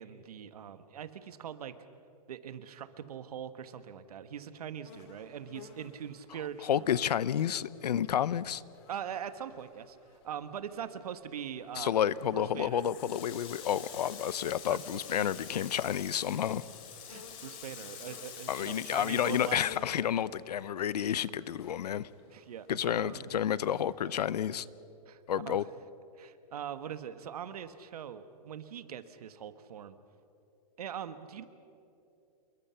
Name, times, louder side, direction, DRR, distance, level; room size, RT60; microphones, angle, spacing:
voice 1, 0.0-1.7 2.3-7.0 8.9-10.0 10.2-12.0 12.3-12.8 14.7-14.8 15.1-15.3 17.1-19.6 22.3-23.4 25.1-25.6 26.2-30.0 30.8-31.5, right 9 dB, 70° right, 11 dB, 1.5 m, -42 dB
sound 1, 4.8-24.2, left 6 dB, 40° left, 2.3 m, -56 dB
voice 2, 6.6-8.6 11.7-16.6 18.5-22.1 22.7-24.7 25.3-25.6, left 9 dB, 90° left, 19 dB, 0.8 m, -30 dB
Water tap faucet, 12.7-20.6 20.9-22.2, left 8 dB, 25° left, 2.8 m, -47 dB
27.5 x 22.5 x 5.8 m, 2.8 s
hypercardioid pair, 170°, 20 cm